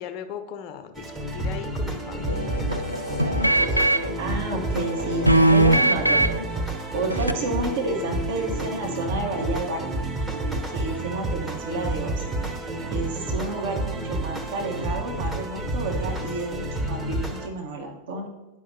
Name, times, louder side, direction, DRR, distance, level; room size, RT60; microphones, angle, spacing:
voice 1, 0.0-3.8, left 7 dB, 40° left, 7 dB, 0.6 m, -39 dB
sound 1, 0.9-17.5, right 2 dB, 10° right, 0.9 m, -30 dB
sound 2, 2.3-4.2 4.8-6.5 7.1-7.3, right 1 dB, 90° right, 0.3 m, -21 dB
voice 2, 4.2-6.3 6.9-10.0 10.7-12.2 12.9-18.3, right 2 dB, 55° right, 1 dB, 1.2 m, -30 dB
10.0 x 5.0 x 2.7 m, 1.0 s
figure-of-eight pair, 90°, 0 cm